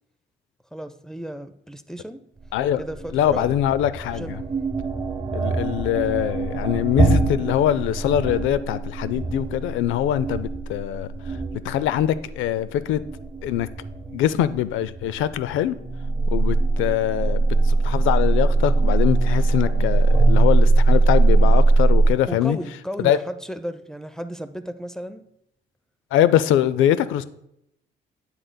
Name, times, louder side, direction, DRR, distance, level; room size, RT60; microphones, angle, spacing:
voice 1, 0.7-2.2 2.8-3.6 4.1-4.4 22.3-25.3, equal, 5° left, 0.5 m, -34 dB
sound 1, 2.4-22.1, right 3 dB, 20° right, 1.7 m, -22 dB
voice 2, 3.1-4.4 5.3-11.4 11.6-13.0 13.4-13.7 14.1-15.8 16.3-22.6 23.0-23.2 26.1-27.2, left 11 dB, 90° left, 0.4 m, -23 dB
9.1 x 7.9 x 2.2 m
cardioid pair, 90°, 20 cm